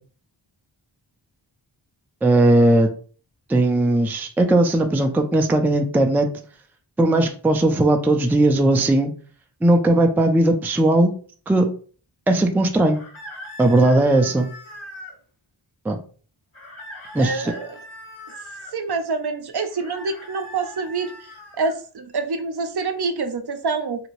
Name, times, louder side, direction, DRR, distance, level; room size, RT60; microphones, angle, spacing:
voice 1, 2.2-2.9 3.5-6.3 7.0-9.1 9.6-11.1 11.5-11.7 12.3-13.0 13.6-14.5 15.9-16.0 17.1-17.5, right 1 dB, 5° right, 5 dB, 0.3 m, -18 dB
sound 1, 12.9-15.2 16.5-18.7 19.7-21.8, left 1 dB, 75° left, 1.3 m, -40 dB
voice 2, 17.2-17.8 18.7-24.1, right 4 dB, 55° right, 8 dB, 0.5 m, -27 dB
2.8 x 2.6 x 2.9 m, 0.42 s
wide cardioid pair, 55°, 47 cm